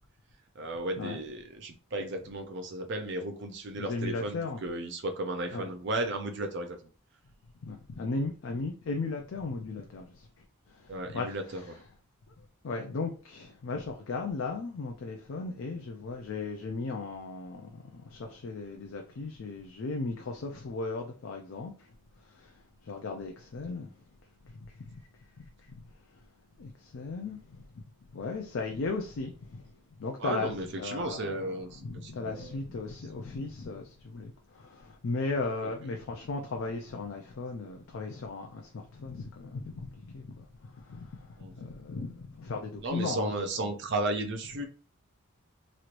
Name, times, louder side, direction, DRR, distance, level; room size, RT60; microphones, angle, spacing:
voice 1, 0.6-6.8 10.9-11.6 30.2-32.6 35.6-35.7 41.4-41.5 42.8-44.7, right 2 dB, 50° right, 0.5 m, -34 dB
voice 2, 3.8-4.6 5.5-5.7 7.4-11.8 12.4-24.1 24.4-26.3 26.6-43.4, left 3 dB, 60° left, 0.4 m, -37 dB
3.0 x 3.0 x 2.5 m
head